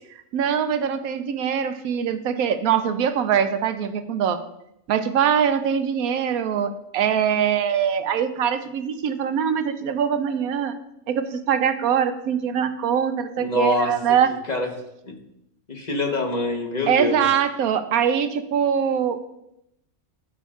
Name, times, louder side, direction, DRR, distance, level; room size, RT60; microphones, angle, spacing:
voice 1, 0.3-4.4 4.9-10.7 11.1-14.3 16.9-19.2, right 8 dB, 75° right, 9 dB, 1.0 m, -23 dB
voice 2, 13.4-13.9 14.5-14.7 15.0-15.1 15.7-17.2, left 2 dB, 30° left, 2 dB, 1.1 m, -25 dB
13.5 x 6.2 x 2.4 m, 0.81 s
omnidirectional pair, 1.6 m